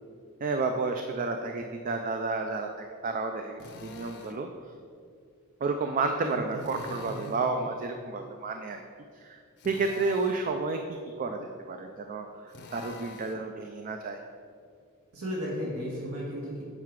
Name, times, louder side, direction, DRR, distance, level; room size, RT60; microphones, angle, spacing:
voice 1, 0.4-4.5 5.6-8.8 9.2-9.4 9.7-10.8 11.2-14.2, right 3 dB, 40° right, 5 dB, 0.4 m, -31 dB
Drill, 3.6-4.4 6.6-7.5 9.6-10.5 12.5-13.5, left 3 dB, 50° left, 0.6 m, -46 dB
voice 2, 6.2-7.6 15.1-16.6, equal, 80° right, -5 dB, 1.6 m, -36 dB
7.6 x 4.7 x 4.7 m, 2.2 s
head